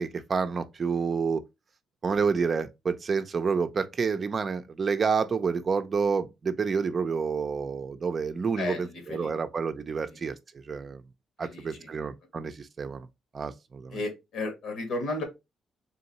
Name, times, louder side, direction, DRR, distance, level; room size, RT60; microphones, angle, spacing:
voice 1, 0.0-1.4 2.0-10.4 10.7-11.0 11.4-13.1 13.3-14.0, right 5 dB, 40° right, 0.5 m, -29 dB
voice 2, 8.6-9.3 10.1-10.2 11.4-12.1 13.9-15.2, left 2 dB, 75° left, 1.8 m, -34 dB
3.8 x 2.7 x 4.0 m
cardioid pair, 90°, 0 cm